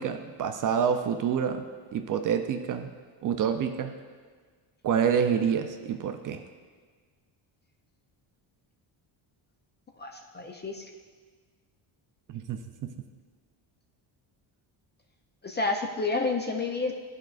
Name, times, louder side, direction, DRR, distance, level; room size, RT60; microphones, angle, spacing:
voice 1, 0.0-1.6 1.9-2.9 3.2-3.9 4.8-6.4 12.3-12.9, right 7 dB, 45° right, 7 dB, 0.4 m, -27 dB
voice 2, 10.0-10.8 15.4-16.9, left 3 dB, 25° left, 3 dB, 0.4 m, -30 dB
10.5 x 4.6 x 2.4 m, 1.5 s
cardioid pair, 105°, 46 cm